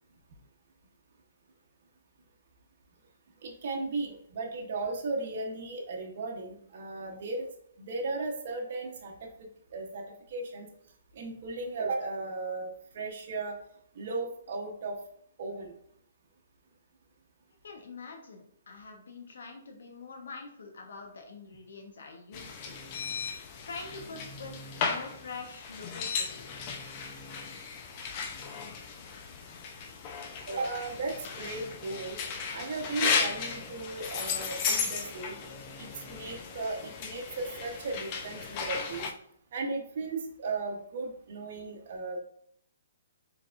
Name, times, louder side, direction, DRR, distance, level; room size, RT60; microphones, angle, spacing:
voice 1, 3.4-7.5 7.8-10.7 11.1-13.6 14.0-15.0 15.4-15.7 30.5-32.2 32.5-35.4 35.8-39.1 39.5-42.2, right 3 dB, 55° right, 0 dB, 0.8 m, -36 dB
voice 2, 17.6-22.8 23.6-24.6 24.8-26.7, left 4 dB, 75° left, 4 dB, 1.0 m, -45 dB
sound 1, 22.3-39.1, left 5 dB, 35° left, 0.5 m, -35 dB
4.6 x 3.4 x 2.4 m, 0.67 s
hypercardioid pair, 140°, 0 cm